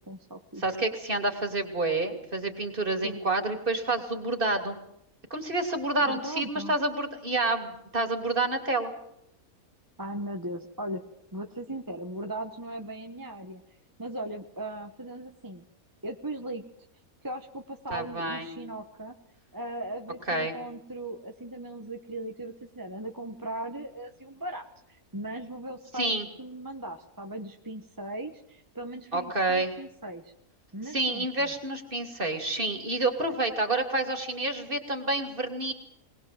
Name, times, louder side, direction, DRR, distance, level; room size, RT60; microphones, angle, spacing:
voice 1, 0.1-0.6 3.0-3.2 6.0-6.7 10.0-11.0 11.3-13.6 14.0-15.6 16.0-16.6 17.2-19.1 19.5-26.1 26.4-30.3 30.7-31.5, right 1 dB, 15° right, 4 dB, 1.2 m, -38 dB
voice 2, 0.6-4.8 5.3-8.9 17.9-18.5 20.3-20.5 25.9-26.3 29.1-29.7 30.9-35.7, right 2 dB, 35° right, 5 dB, 3.0 m, -28 dB
20.5 x 20.5 x 7.7 m, 0.75 s
omnidirectional pair, 1.5 m